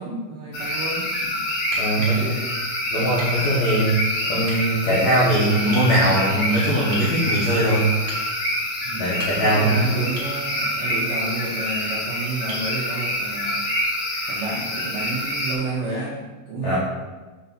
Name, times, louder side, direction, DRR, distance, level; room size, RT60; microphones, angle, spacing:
voice 1, 0.0-1.5 2.0-2.5 8.8-9.1 9.4-13.6 14.3-16.8, right 3 dB, 85° right, -5 dB, 1.9 m, -31 dB
sound 1, 0.5-15.5, left 1 dB, 65° left, 2.8 m, -27 dB
sound 2, 1.7-2.2 3.2-3.4 4.4-4.6 5.7-5.9 6.9-7.1 8.1-8.3 9.0-9.6 10.2-10.4 12.5-12.7 14.6-14.7, right 1 dB, 60° right, 2.4 m, -36 dB
voice 2, 1.8-2.4 2.9-4.0 4.3-7.9 9.0-9.8 16.6-16.8, right 1 dB, 80° left, -8 dB, 1.6 m, -20 dB
7.9 x 2.7 x 5.8 m, 1.2 s
omnidirectional pair, 5.4 m